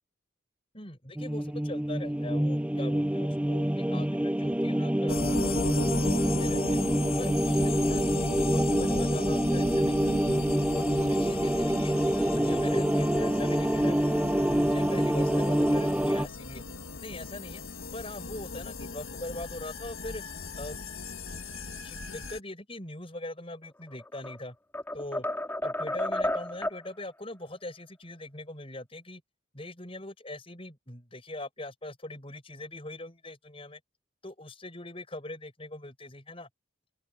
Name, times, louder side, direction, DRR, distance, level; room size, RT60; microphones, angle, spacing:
voice 1, 0.7-6.8 7.2-10.4 10.7-16.6 17.0-17.6 17.9-20.2 20.6-21.1 21.8-24.5 24.9-25.3 25.6-29.2 29.5-33.8 34.2-36.5, left 1 dB, 25° left, 6.5 m, -42 dB
sound 1, 1.2-16.3, right 1 dB, 5° right, 0.5 m, -26 dB
sound 2, 5.1-22.4, left 3 dB, 80° left, 2.0 m, -37 dB
sound 3, 23.9-24.4 24.7-26.9, left 1 dB, 10° left, 2.0 m, -31 dB
open air
head